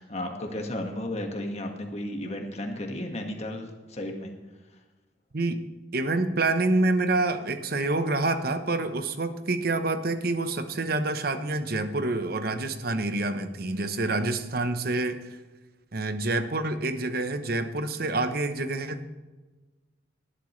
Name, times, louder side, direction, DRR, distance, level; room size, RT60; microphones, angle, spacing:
voice 1, 0.0-4.3, left 1 dB, 35° left, 2 dB, 1.7 m, -34 dB
voice 2, 5.9-15.4 15.9-19.1, right 2 dB, 55° right, 10 dB, 0.9 m, -27 dB
18.5 x 11.0 x 3.2 m, 1.2 s
head